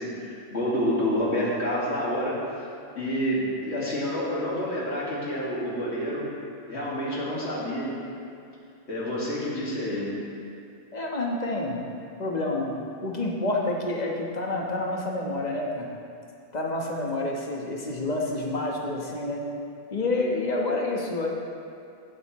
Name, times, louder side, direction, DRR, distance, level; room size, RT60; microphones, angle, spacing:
voice 1, 0.0-2.4 2.9-6.3 6.7-7.9 8.9-10.1, equal, 70° left, -7 dB, 2.5 m, -28 dB
voice 2, 10.9-11.8 12.2-12.8 13.0-15.9 16.5-19.4 19.9-21.3, left 2 dB, 40° left, -1 dB, 1.3 m, -28 dB
16.0 x 7.9 x 3.1 m, 2.5 s
omnidirectional pair, 1.2 m